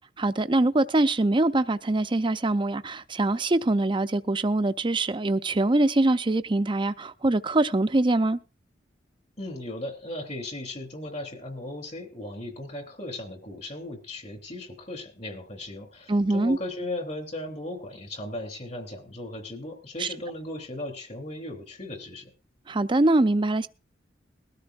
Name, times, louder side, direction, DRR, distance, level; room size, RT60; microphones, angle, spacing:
voice 1, 0.2-8.4 16.1-16.6 20.0-20.1 22.7-23.7, right 2 dB, 25° right, 0.6 m, -23 dB
voice 2, 9.4-22.3, left 1 dB, 40° left, 3.1 m, -37 dB
20.5 x 13.0 x 2.5 m
head